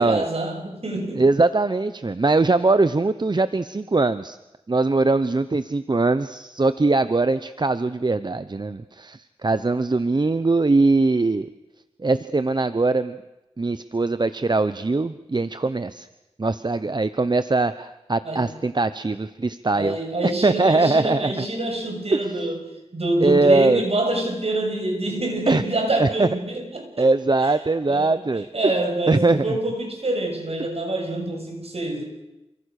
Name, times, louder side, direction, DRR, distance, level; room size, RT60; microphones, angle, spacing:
voice 1, 0.0-1.3 18.2-18.5 19.7-22.6 22.9-27.1 27.4-27.5 27.9-28.2 28.5-32.0, right 1 dB, 60° right, 3 dB, 7.1 m, -26 dB
voice 2, 1.2-4.4 4.7-11.5 12.0-13.2 13.6-16.1 16.4-20.0 20.2-21.5 22.1-22.2 23.2-23.8 25.5-25.6 26.0-26.3 27.0-28.5 29.1-29.6, right 3 dB, 40° right, 13 dB, 0.9 m, -21 dB
28.5 x 25.0 x 6.6 m, 0.96 s
wide cardioid pair, 60°, 11 cm